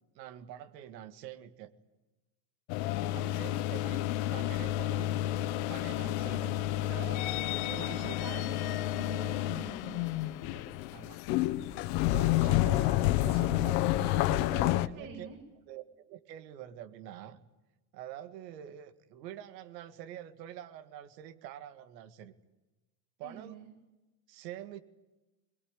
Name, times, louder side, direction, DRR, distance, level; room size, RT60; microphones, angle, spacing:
voice 1, 0.2-1.7 3.1-5.1 5.7-8.4 9.5-9.8 10.9-11.2 12.1-15.3 15.7-15.8 16.1-17.4 17.9-22.3 23.2-23.5 24.3-24.8, right 11 dB, 90° right, 11 dB, 2.1 m, -46 dB
sound 1, 2.7-14.9, left 14 dB, 75° left, 1.3 m, -30 dB
voice 2, 7.6-10.6 15.0-15.4 23.2-23.7, right 5 dB, 65° right, 0 dB, 7.2 m, -47 dB
23.5 x 21.0 x 9.9 m, 1.1 s
supercardioid pair, 95°, 48 cm